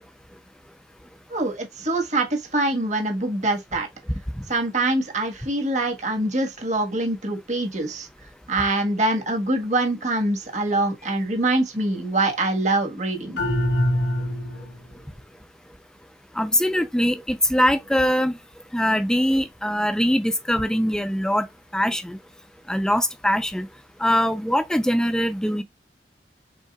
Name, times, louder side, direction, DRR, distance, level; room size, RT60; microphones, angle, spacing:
voice 1, 1.3-3.9 4.5-8.1 8.5-13.4, right 2 dB, 40° right, 1.5 m, -24 dB
sound 1, 13.4-14.8, left 1 dB, 90° left, 1.5 m, -23 dB
voice 2, 16.4-18.4 18.7-21.5 21.7-22.2 22.7-23.7 24.0-25.6, equal, 5° left, 0.5 m, -22 dB
5.4 x 4.1 x 2.4 m
head